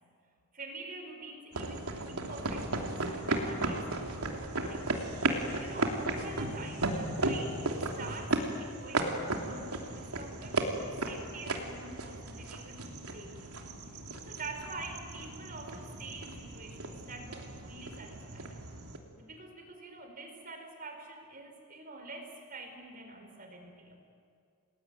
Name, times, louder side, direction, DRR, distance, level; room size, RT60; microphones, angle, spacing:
voice 1, 0.5-5.2 5.6-7.7 8.0-13.5 13.8-18.6 19.2-24.0, right 3 dB, 40° right, 4 dB, 4.6 m, -46 dB
sound 1, 1.5-19.0, right 2 dB, 85° right, 3.1 m, -35 dB
29.5 x 20.5 x 9.4 m, 2.4 s
head